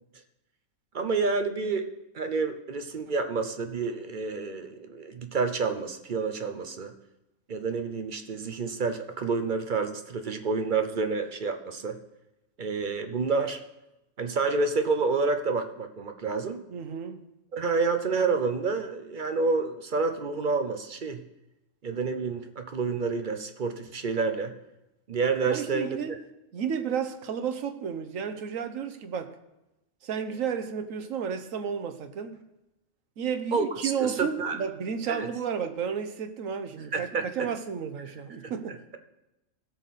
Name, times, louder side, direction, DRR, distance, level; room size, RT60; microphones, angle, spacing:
voice 1, 0.9-1.8 2.1-6.9 7.5-12.0 12.6-13.6 14.2-16.6 17.5-21.2 21.8-24.5 25.1-26.0 33.5-34.6 35.1-35.3 36.9-37.3, right 4 dB, 45° right, 0.8 m, -29 dB
voice 2, 16.7-17.2 25.5-26.2 26.5-29.4 30.0-32.4 33.2-38.8, right 7 dB, 85° right, 1.3 m, -32 dB
16.5 x 6.6 x 4.1 m
omnidirectional pair, 1.3 m